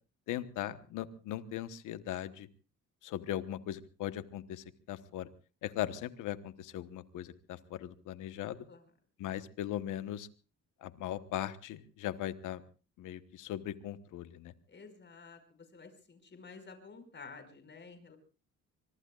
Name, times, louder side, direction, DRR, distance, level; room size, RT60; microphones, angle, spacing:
voice 1, 0.3-2.5 3.0-5.3 5.6-8.7 9.2-10.3 10.8-12.6 13.0-14.5, left 12 dB, 90° left, 12 dB, 1.2 m, -39 dB
voice 2, 14.7-15.4 15.7-18.2, left 4 dB, 35° left, 8 dB, 5.4 m, -51 dB
24.5 x 23.5 x 2.4 m, 0.35 s
cardioid pair, 90°, 30 cm